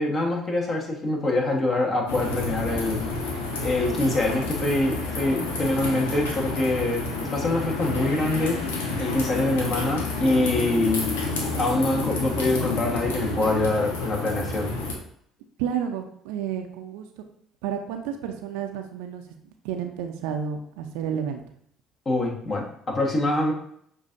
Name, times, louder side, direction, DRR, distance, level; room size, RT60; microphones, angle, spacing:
voice 1, 0.0-3.3 3.6-8.7 9.0-11.0 11.6-14.7 22.0-23.5, left 2 dB, 40° left, -1 dB, 1.3 m, -25 dB
sound 1, 2.1-15.0, left 2 dB, 90° left, 0.7 m, -29 dB
voice 2, 15.6-17.2 17.6-21.4, right 8 dB, 80° right, 5 dB, 0.5 m, -31 dB
6.6 x 2.6 x 2.6 m, 0.66 s
hypercardioid pair, 65°, 0 cm